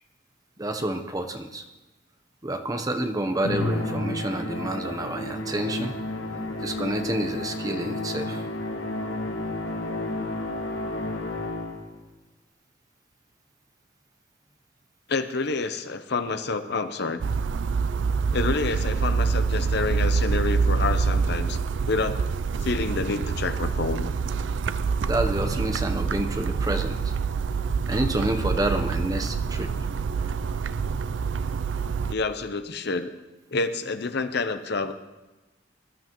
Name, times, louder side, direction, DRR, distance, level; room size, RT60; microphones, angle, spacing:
voice 1, 0.6-1.6 2.4-5.9 6.6-8.5 25.1-27.1 27.9-29.7, right 1 dB, 20° right, 6 dB, 0.9 m, -28 dB
Musical instrument, 3.4-12.0, left 2 dB, 75° left, 1.5 m, -31 dB
voice 2, 15.1-17.2 18.3-21.6 21.9-22.2 22.6-24.1 32.1-33.1 33.5-34.9, left 3 dB, 55° left, 9 dB, 0.8 m, -28 dB
sound 1, 17.2-32.2, right 5 dB, 70° right, 0.4 m, -26 dB
21.0 x 12.5 x 3.1 m, 1.1 s
head